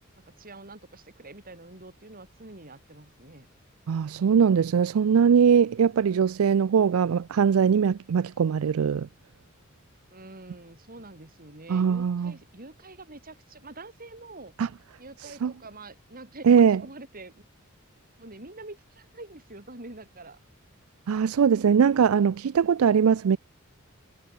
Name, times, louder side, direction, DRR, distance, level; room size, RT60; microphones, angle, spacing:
voice 1, 0.2-3.5 10.1-14.5 15.0-17.5 18.2-20.4, right 2 dB, 45° right, 5.5 m, -46 dB
voice 2, 3.9-9.1 11.7-12.3 14.6-14.7 15.4-15.5 16.5-16.8 21.1-23.4, right 7 dB, 90° right, 0.4 m, -21 dB
head